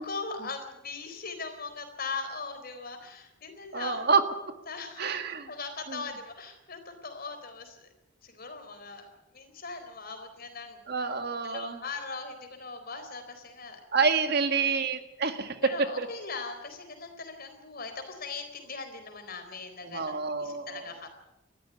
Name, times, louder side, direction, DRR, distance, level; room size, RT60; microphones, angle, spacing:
voice 1, 0.0-4.0 4.7-5.2 5.5-7.9 8.2-11.1 11.4-14.0 14.6-14.8 15.6-20.1 20.4-21.1, left 4 dB, 50° left, 7 dB, 4.0 m, -40 dB
voice 2, 3.7-4.2 5.0-5.5 5.9-6.0 10.9-11.8 13.9-15.6 16.0-16.1 19.8-20.9, right 5 dB, 55° right, 8 dB, 1.8 m, -28 dB
20.0 x 14.0 x 9.9 m, 0.96 s
head